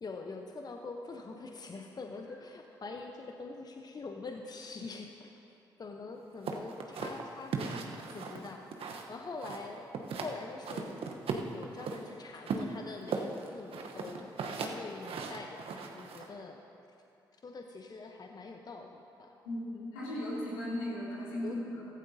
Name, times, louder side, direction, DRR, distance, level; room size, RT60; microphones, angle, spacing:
voice 1, 0.0-5.3 5.8-9.9 10.2-11.0 11.5-16.7 17.4-19.3 21.4-21.6, left 3 dB, 40° left, 3 dB, 0.9 m, -44 dB
sound 1, 6.5-9.1 9.4-10.3 10.6-12.0 12.5-16.3, right 5 dB, 60° right, 1.0 m, -37 dB
voice 2, 19.4-21.9, left 1 dB, 85° left, -7 dB, 2.6 m, -37 dB
15.0 x 14.5 x 2.8 m, 2.8 s
hypercardioid pair, 40°, 11 cm